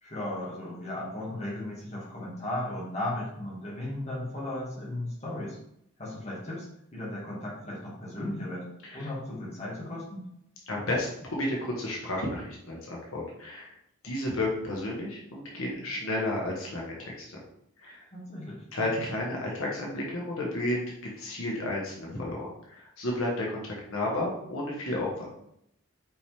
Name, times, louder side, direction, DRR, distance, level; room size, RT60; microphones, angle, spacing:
voice 1, 0.0-5.6 6.0-6.7 6.9-8.7 8.9-10.3 18.1-19.0, left 1 dB, 30° left, -5 dB, 2.1 m, -36 dB
voice 2, 10.7-13.7 14.0-17.3 17.8-18.0 18.7-25.3, left 1 dB, 75° left, -3 dB, 1.5 m, -32 dB
6.0 x 5.0 x 3.5 m, 0.76 s
head